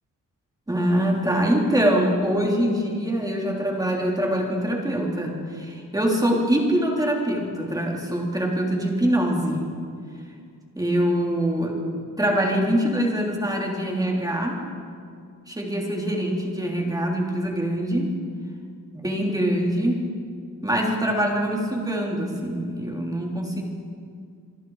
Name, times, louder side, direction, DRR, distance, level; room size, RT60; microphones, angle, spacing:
voice 1, 0.7-9.7 10.7-11.8 12.2-14.6 15.5-18.2 18.9-20.0 20.6-23.6, equal, 10° right, -1 dB, 3.3 m, -24 dB
28.0 x 23.0 x 4.8 m, 2.2 s
wide cardioid pair, 170°, 32 cm